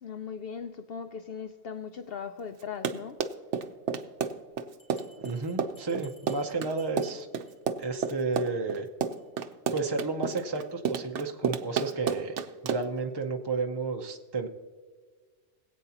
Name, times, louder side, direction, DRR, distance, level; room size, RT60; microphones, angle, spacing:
voice 1, 0.0-3.2, left 6 dB, 65° left, 0.6 m, -39 dB
Run, 2.6-13.0, right 7 dB, 65° right, 1.0 m, -31 dB
Bell, 4.8-7.5 7.8-8.0 8.3-8.4 8.7-8.8 9.2-9.3, equal, 40° left, 3.0 m, -58 dB
voice 2, 5.2-7.3 7.8-8.9 9.7-12.4 12.6-14.5, right 3 dB, 30° right, 0.5 m, -32 dB
21.5 x 8.4 x 2.9 m
omnidirectional pair, 1.3 m